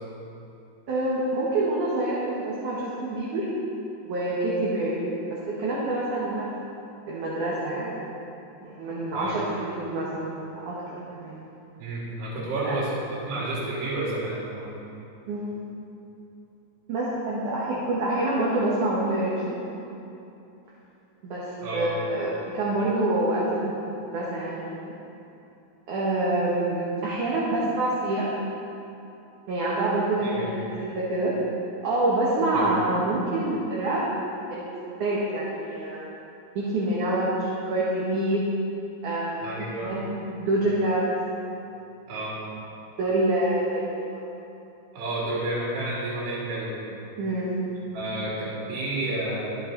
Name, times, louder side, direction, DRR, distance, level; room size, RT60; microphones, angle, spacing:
voice 1, 0.9-3.5 4.0-6.5 7.1-8.1 8.6-11.4 12.6-12.8 15.3-15.6 16.9-19.6 21.2-24.7 25.9-28.3 29.5-31.3 31.8-34.0 34.5-34.7 35.0-36.1 36.6-38.4 39.0-41.1 43.0-44.2 47.2-47.5, right 2 dB, 60° right, -6 dB, 2.7 m, -27 dB
voice 2, 11.8-13.0 13.2-14.8 21.6-21.9 30.2-30.5 32.5-32.7 39.4-39.9 42.1-42.4 44.9-46.7 47.9-49.5, right 2 dB, 75° right, -7 dB, 4.9 m, -30 dB
24.0 x 8.0 x 4.1 m, 2.8 s
omnidirectional pair, 4.7 m